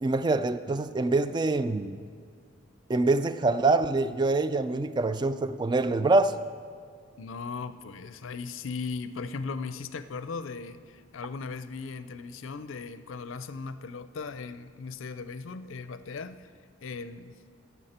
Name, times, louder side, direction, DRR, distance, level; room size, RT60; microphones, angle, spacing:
voice 1, 0.0-2.0 2.9-6.4, right 3 dB, 20° right, 12 dB, 0.3 m, -25 dB
voice 2, 7.2-16.5 16.8-17.3, left 4 dB, 75° left, 12 dB, 0.5 m, -38 dB
16.5 x 7.0 x 4.3 m, 2.1 s
head